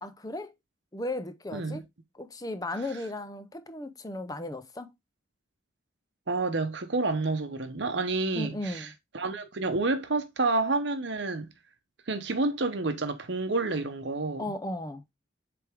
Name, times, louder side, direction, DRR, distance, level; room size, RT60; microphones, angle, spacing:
voice 1, 0.0-0.5 0.9-1.8 2.1-4.9 8.3-8.9 14.4-15.0, left 1 dB, 20° left, 0.6 m, -36 dB
voice 2, 1.5-1.8 6.3-8.9 9.1-11.5 12.1-14.5, right 3 dB, 60° right, 0.8 m, -29 dB
7.8 x 3.5 x 3.5 m
head